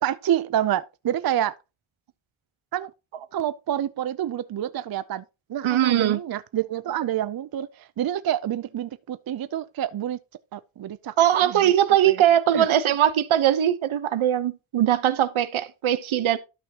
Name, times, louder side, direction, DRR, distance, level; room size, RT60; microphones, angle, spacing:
voice 1, 0.0-1.6 2.7-2.9 3.3-5.2 5.5-10.2 10.5-11.1 11.5-11.7 12.0-12.2 12.5-12.7, right 11 dB, 50° right, 0.5 m, -27 dB
voice 2, 5.6-6.2 11.2-16.4, right 11 dB, 75° right, 1.0 m, -21 dB
12.5 x 5.8 x 2.9 m
wide cardioid pair, 115°, 48 cm